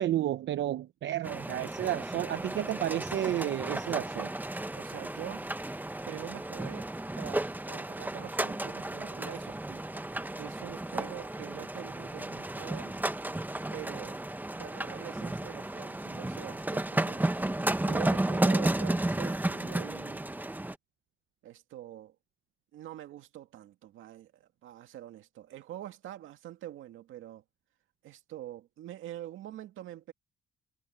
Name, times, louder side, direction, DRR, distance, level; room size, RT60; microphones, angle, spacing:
voice 1, 0.0-4.3, right 12 dB, 65° right, 0.7 m, -31 dB
sound 1, 1.2-20.7, right 1 dB, 10° right, 1.1 m, -33 dB
voice 2, 4.8-5.5 6.1-6.9 7.2-9.9 10.4-13.0 13.7-14.2 14.6-20.2 21.4-22.2 22.7-27.4 28.0-30.1, right 13 dB, 85° right, 2.2 m, -45 dB
cardioid pair, 90°, 20 cm